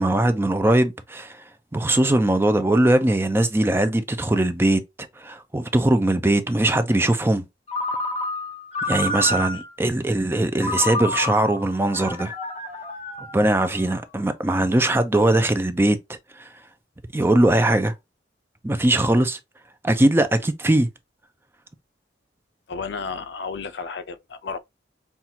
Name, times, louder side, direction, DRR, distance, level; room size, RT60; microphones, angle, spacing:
voice 1, 0.0-1.4 1.7-7.4 8.9-12.3 13.3-16.5 17.1-17.9 18.6-19.4 19.8-20.9, right 1 dB, 10° right, 0.4 m, -20 dB
Ringtone, 7.7-9.8 10.6-14.0, left 2 dB, 35° left, 1.0 m, -29 dB
voice 2, 22.7-24.6, left 5 dB, 65° left, 0.5 m, -32 dB
5.7 x 2.3 x 2.7 m
head